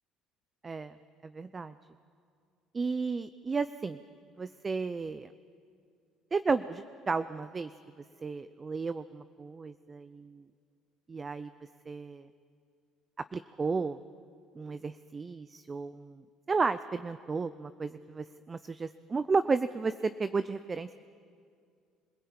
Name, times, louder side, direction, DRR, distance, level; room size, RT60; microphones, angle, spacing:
voice 1, 0.6-0.9 1.2-1.7 2.7-4.0 4.4-5.3 6.3-7.7 8.0-10.5 11.1-11.5 11.9-12.3 13.2-14.0 14.5-20.9, right 4 dB, 30° right, 13 dB, 0.6 m, -33 dB
25.5 x 17.0 x 8.7 m, 2.3 s
supercardioid pair, 70°, 0 cm